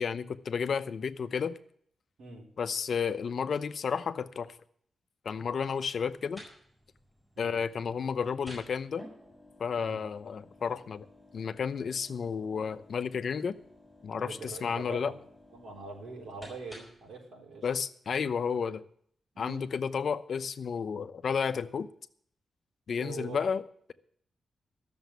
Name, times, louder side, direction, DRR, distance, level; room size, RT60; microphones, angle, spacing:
voice 1, 0.0-1.6 2.6-4.6 5.2-6.4 7.4-9.0 9.6-11.1 11.3-13.6 14.0-15.1 17.6-18.8 19.4-21.9 22.9-23.6, left 6 dB, 55° left, 11 dB, 0.7 m, -32 dB
sound 1, 5.9-17.1, left 1 dB, 5° right, 6.3 m, -54 dB
voice 2, 14.1-15.2 15.5-17.7 19.3-19.7 23.0-23.4, right 3 dB, 85° right, 1 dB, 4.1 m, -43 dB
13.5 x 7.0 x 9.3 m, 0.63 s
wide cardioid pair, 170°, 0 cm